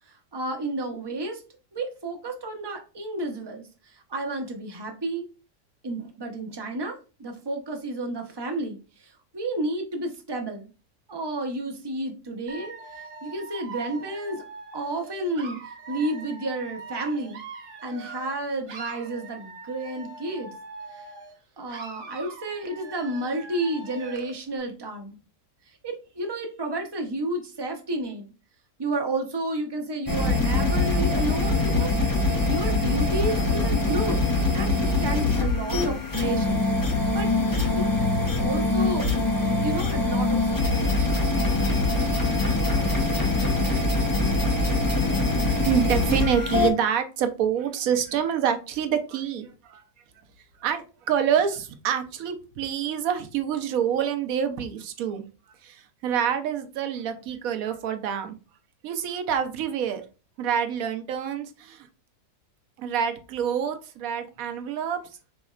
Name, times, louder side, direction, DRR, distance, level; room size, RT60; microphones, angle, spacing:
voice 1, 0.1-1.4 1.7-5.3 5.8-10.7 11.1-14.4 14.7-17.4 17.8-20.5 20.9-21.1 21.6-25.2 25.7-28.3 28.8-32.0 32.5-34.3 34.5-36.6 36.9-37.3 37.8-37.9 38.4-39.1 39.6-40.9, right 2 dB, 25° right, 4 dB, 0.5 m, -31 dB
Dog / Alarm, 12.5-18.4 18.7-21.4 21.7-24.4, right 4 dB, 90° right, 1.4 m, -42 dB
sound 1, 30.1-46.7, left 2 dB, 30° left, 0.4 m, -23 dB
voice 2, 45.6-49.8 50.6-55.2 55.6-58.4 58.8-60.0 60.4-61.9 62.8-65.0, right 8 dB, 70° right, 8 dB, 1.1 m, -27 dB
5.1 x 4.0 x 2.4 m, 0.33 s
omnidirectional pair, 1.6 m